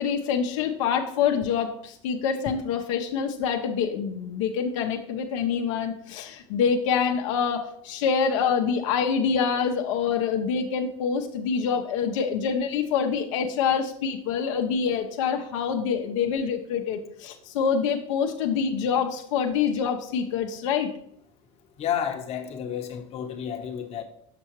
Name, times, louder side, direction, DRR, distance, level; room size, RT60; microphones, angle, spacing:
voice 1, 0.0-20.9, left 6 dB, 75° left, 0.7 m, -26 dB
voice 2, 21.8-24.0, left 9 dB, 40° left, 0.9 m, -31 dB
6.8 x 5.5 x 3.0 m
supercardioid pair, 110°, 17 cm